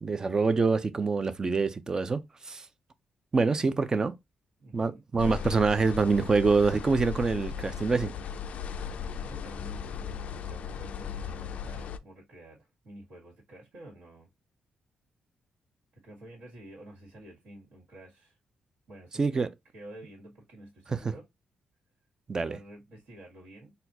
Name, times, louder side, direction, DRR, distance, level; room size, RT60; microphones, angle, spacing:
voice 1, 0.0-2.7 3.3-4.1 4.7-8.1 19.2-19.5 20.9-21.0 22.3-22.6, right 4 dB, 25° right, 0.4 m, -26 dB
voice 2, 4.6-5.0 8.8-14.3 15.9-18.4 18.9-21.2 22.4-23.7, right 1 dB, 65° right, 1.7 m, -50 dB
sound 1, 5.2-12.0, left 7 dB, 60° left, 0.3 m, -37 dB
4.1 x 2.3 x 2.7 m
cardioid pair, 130°, 3 cm